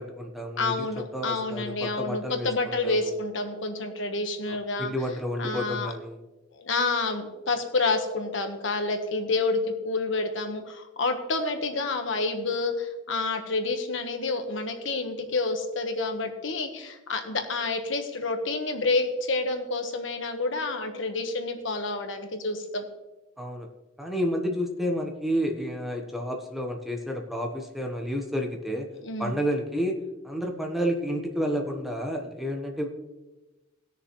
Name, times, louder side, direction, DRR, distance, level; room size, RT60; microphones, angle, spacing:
voice 1, 0.0-0.9 1.1-3.1 4.8-6.2 23.4-23.7 24.0-28.9 29.2-30.0 30.2-32.9, equal, ahead, 2 dB, 1.1 m, -30 dB
voice 2, 0.6-4.9 5.4-5.9 6.5-22.8 29.0-29.4, left 3 dB, 70° left, 5 dB, 1.3 m, -29 dB
19.0 x 6.7 x 3.1 m, 1.1 s
head